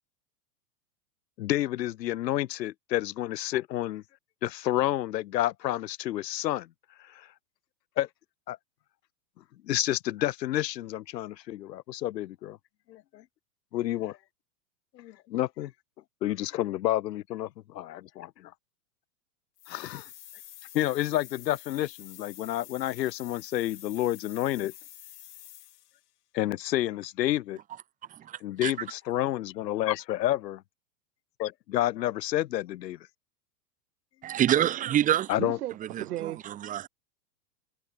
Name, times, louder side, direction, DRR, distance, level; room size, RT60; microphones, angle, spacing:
voice 1, 1.4-4.0 4.4-6.7 7.0-7.3 8.0-8.1 8.5-8.6 9.6-12.6 12.9-13.2 13.7-14.2 15.0-15.7 16.2-18.5 19.7-20.1 20.7-24.7 26.3-27.6 28.4-30.6 31.4-33.0 35.3-35.6, left 14 dB, 85° left, 1.3 m, -29 dB
sound 1, 19.6-26.0, left 13 dB, 70° left, 5.9 m, -48 dB
voice 2, 28.3-28.7 34.2-35.3 35.9-36.9, right 11 dB, 15° right, 1.4 m, -27 dB
voice 3, 35.4-36.6, right 14 dB, 65° right, 3.5 m, -35 dB
supercardioid pair, 165°, 48 cm